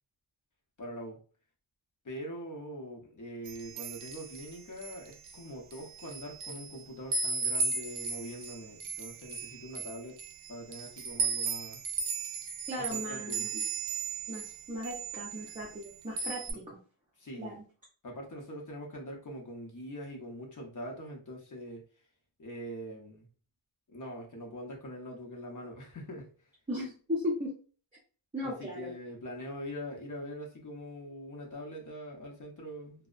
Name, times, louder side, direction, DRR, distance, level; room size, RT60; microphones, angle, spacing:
voice 1, 0.8-1.2 2.0-10.2 10.5-11.8 12.8-13.5 16.5-16.7 17.2-17.6 18.0-21.8 22.4-23.3 23.9-26.3 28.4-33.1, equal, 40° left, 0 dB, 0.7 m, -43 dB
sound 1, 3.5-5.4 5.7-6.7 7.1-14.6 14.8-15.9 16.2-16.5, right 4 dB, 75° right, 0.5 m, -35 dB
voice 2, 12.7-13.6 14.3-16.8 17.4-17.5 26.7-27.5 28.3-28.9, left 1 dB, 15° right, -5 dB, 0.6 m, -37 dB
2.6 x 2.0 x 2.4 m, 0.40 s
wide cardioid pair, 120°, 49 cm